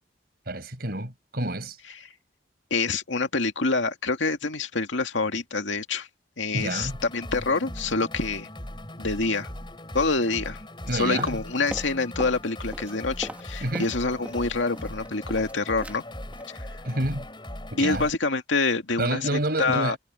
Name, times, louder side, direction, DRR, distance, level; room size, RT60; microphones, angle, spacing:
voice 1, 0.5-1.8 6.5-7.0 10.9-11.4 13.6-13.9 16.8-17.3 17.7-18.1 19.0-20.0, right 1 dB, 55° right, 6.2 m, -28 dB
voice 2, 2.7-6.1 6.4-8.5 9.0-9.5 9.9-10.6 10.9-16.0 17.8-20.0, left 3 dB, 75° left, 2.2 m, -26 dB
sound 1, 6.6-18.1, left 1 dB, 25° left, 6.9 m, -39 dB
sound 2, 11.2-12.4 12.7-14.5 14.8-15.5 15.8-16.0 16.3-16.5 16.8-17.1 17.4-17.5, right 1 dB, 10° right, 2.8 m, -40 dB
head